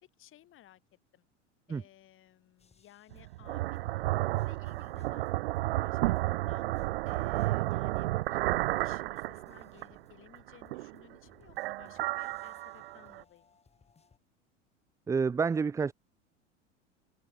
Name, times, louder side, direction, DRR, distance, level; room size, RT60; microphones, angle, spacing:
voice 1, 0.0-0.8 1.1-1.3 1.7-6.7 7.1-8.4 8.8-13.6, left 13 dB, 35° left, 3.4 m, -59 dB
sound 1, 2.6-5.6 5.8-8.0 8.2-14.2, left 5 dB, 15° left, 5.0 m, -67 dB
sound 2, 3.1-10.0 10.3-11.1 11.5-13.2, right 18 dB, 55° right, 0.6 m, -32 dB
voice 2, 15.1-15.9, right 5 dB, 10° right, 0.5 m, -28 dB
open air
figure-of-eight pair, 85°, 37 cm